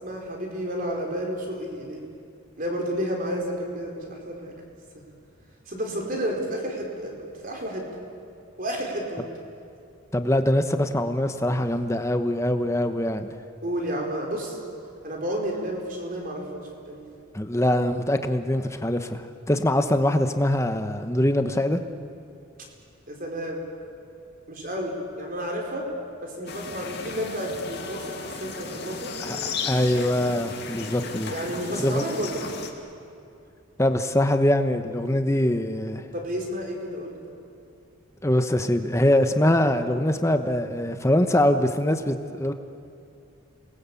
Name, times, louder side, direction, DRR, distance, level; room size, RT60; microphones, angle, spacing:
voice 1, 0.0-2.0 2.6-4.5 5.7-7.2 7.4-7.8 8.6-9.3 13.6-14.6 15.0-17.0 23.1-23.6 24.5-25.9 26.2-29.1 31.3-32.4 36.1-37.2, equal, 40° right, 0 dB, 4.7 m, -31 dB
voice 2, 10.1-13.3 17.3-21.8 29.2-29.4 29.6-31.3 31.8-32.0 33.8-36.1 38.2-42.5, left 1 dB, 15° left, 8 dB, 1.1 m, -23 dB
sound 1, 26.5-32.7, left 4 dB, 55° left, 2.5 m, -35 dB
28.0 x 20.5 x 8.5 m, 2.6 s
head